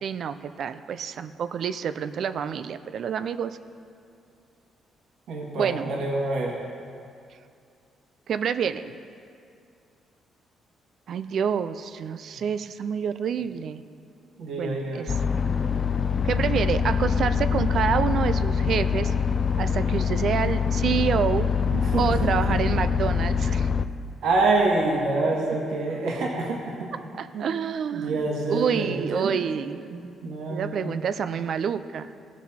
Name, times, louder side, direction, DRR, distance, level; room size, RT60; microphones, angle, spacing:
voice 1, 0.0-3.6 5.6-5.9 8.3-8.9 11.1-13.8 14.6-15.1 16.2-19.1 19.6-21.5 22.0-23.7 27.2-29.8 30.5-32.1, right 7 dB, 65° right, 11 dB, 0.4 m, -28 dB
voice 2, 5.3-6.6 14.4-15.1 21.7-22.0 22.5-22.6 24.2-26.9 27.3-27.5 27.9-29.4 29.9-30.9, right 2 dB, 80° right, -2 dB, 1.6 m, -26 dB
sound 1, 15.1-23.9, left 6 dB, 40° left, 0.4 m, -24 dB
16.5 x 6.1 x 4.3 m, 2.4 s
cardioid pair, 90°, 0 cm